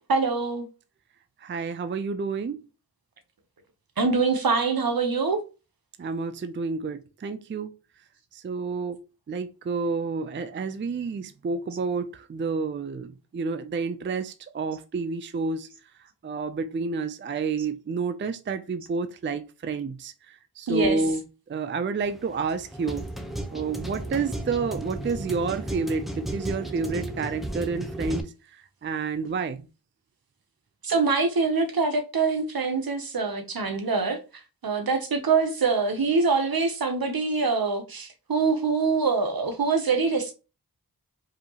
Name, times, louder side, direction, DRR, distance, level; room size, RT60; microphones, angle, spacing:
voice 1, 0.1-0.7 4.0-5.4 17.6-17.7 20.7-21.2 30.8-40.3, right 4 dB, 65° right, 0.9 m, -24 dB
voice 2, 1.4-2.6 6.0-7.7 8.3-9.0 9.3-15.7 16.2-21.2 21.5-23.1 23.5-29.7, right 4 dB, 30° right, 0.4 m, -30 dB
sound 1, 22.0-28.2, right 1 dB, ahead, 0.7 m, -34 dB
4.9 x 2.7 x 2.9 m
wide cardioid pair, 50°, 39 cm